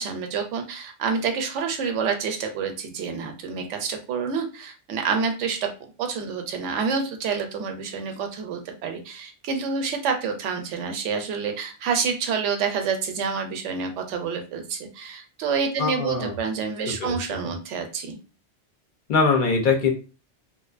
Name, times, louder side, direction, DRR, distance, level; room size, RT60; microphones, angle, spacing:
voice 1, 0.0-5.7 6.0-18.2, right 5 dB, 85° right, 5 dB, 0.9 m, -28 dB
voice 2, 15.8-16.3 17.0-17.1 19.1-19.9, left 4 dB, 50° left, 3 dB, 0.7 m, -22 dB
2.6 x 2.1 x 2.4 m, 0.34 s
omnidirectional pair, 1.2 m